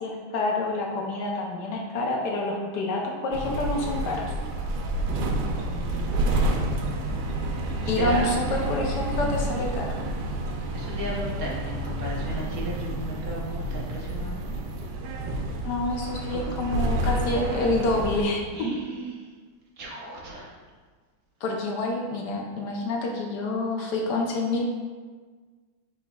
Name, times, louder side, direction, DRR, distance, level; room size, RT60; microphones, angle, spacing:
voice 1, 0.0-4.3 7.9-10.0 15.6-18.4 21.4-24.7, left 2 dB, 70° left, 0 dB, 1.1 m, -27 dB
sound 1, 3.3-18.2, right 1 dB, 85° right, 1.4 m, -29 dB
voice 2, 5.3-6.5 7.8-8.3 10.7-14.6 16.3-16.6 18.5-19.3 19.8-20.5, right 1 dB, 60° right, -4 dB, 1.0 m, -36 dB
5.8 x 4.0 x 2.3 m, 1.4 s
omnidirectional pair, 2.2 m